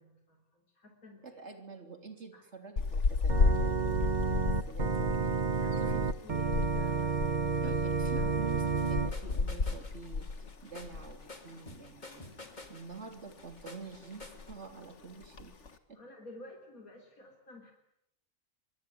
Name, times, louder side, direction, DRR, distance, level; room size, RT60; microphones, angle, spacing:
voice 1, 0.0-1.5 2.3-2.4 5.6-7.8 8.1-8.3 12.2-12.4 15.9-17.7, left 2 dB, 85° left, 2 dB, 4.0 m, -51 dB
voice 2, 1.2-5.4 5.8-6.0 7.6-8.6 8.9-12.3 12.7-15.5 15.9-16.0, right 4 dB, 50° right, 6 dB, 3.8 m, -48 dB
sound 1, 2.8-11.3 11.5-11.8 12.1-13.0 13.3-13.7 13.9-14.0 14.2-14.7 15.2-15.7, left 4 dB, 55° left, 1.8 m, -33 dB
Organ, 3.3-9.1, right 5 dB, 35° right, 1.2 m, -30 dB
sound 2, 8.3-14.5, left 2 dB, 30° left, 2.9 m, -50 dB
24.5 x 23.0 x 9.8 m, 0.79 s
omnidirectional pair, 1.4 m